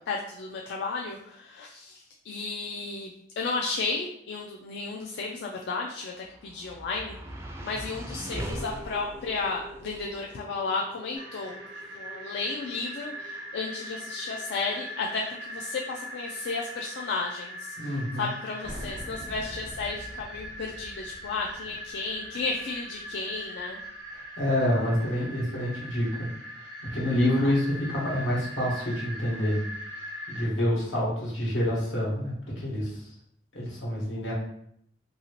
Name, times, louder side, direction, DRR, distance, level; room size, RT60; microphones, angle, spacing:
voice 1, 0.1-7.2 7.6-11.6 11.9-23.8, left 4 dB, 65° left, 0 dB, 0.3 m, -33 dB
Title Bang ( Steel ), 5.9-18.2, equal, 15° right, 0.3 m, -43 dB
sound 1, 11.1-30.4, equal, 85° right, 0.7 m, -41 dB
voice 2, 17.8-18.3 24.1-26.3 26.6-26.7 26.9-29.6 30.3-33.1 33.5-34.3, left 1 dB, 85° left, -5 dB, 1.3 m, -27 dB
sound 2, 18.6-23.9, equal, 35° left, 0.8 m, -44 dB
2.8 x 2.7 x 2.9 m, 0.73 s
head